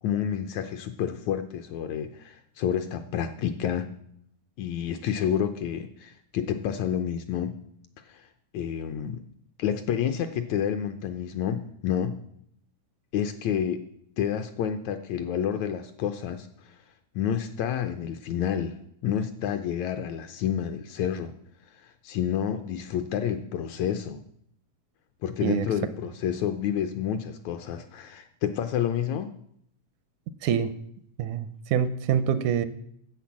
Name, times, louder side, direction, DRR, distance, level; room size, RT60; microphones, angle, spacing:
voice 1, 0.0-3.9 4.6-7.5 8.1-8.3 8.5-9.2 9.6-12.2 13.1-13.9 14.2-16.8 17.1-18.8 19.0-21.3 21.7-24.2 25.2-29.3, left 9 dB, 80° left, 8 dB, 1.7 m, -29 dB
voice 2, 30.4-30.7 31.2-32.7, right 8 dB, 80° right, 13 dB, 2.0 m, -25 dB
10.5 x 7.8 x 7.3 m, 0.70 s
omnidirectional pair, 3.7 m